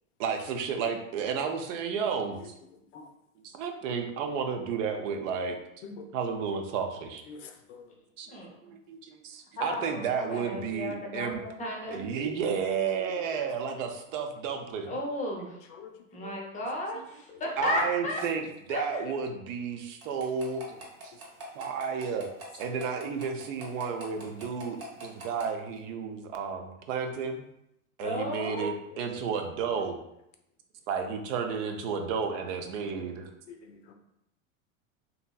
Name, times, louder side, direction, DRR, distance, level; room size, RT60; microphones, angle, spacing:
voice 1, 0.2-2.5 3.5-5.6 6.1-7.2 8.2-8.4 8.6-11.4 11.9-14.9 17.6-18.4 18.7-20.6 21.0-21.1 21.6-22.3 22.5-27.4 28.0-30.0 30.9-33.3, right 6 dB, 65° right, 5 dB, 0.6 m, -32 dB
voice 2, 7.3-7.9 11.9-12.3 13.0-13.5 15.7-15.9 16.2-16.3 17.3-17.4 28.9-29.0 29.8-29.9 33.0-33.1 33.5-33.9, left 5 dB, 65° left, 5 dB, 0.6 m, -46 dB
voice 3, 9.6-12.1 14.9-15.6 16.1-18.2 18.7-19.0 28.0-28.8, left 1 dB, 20° left, -1 dB, 0.6 m, -34 dB
sound 1, 20.0-25.4, right 1 dB, 35° right, 0.9 m, -43 dB
2.9 x 2.7 x 2.2 m, 0.81 s
supercardioid pair, 120°, 41 cm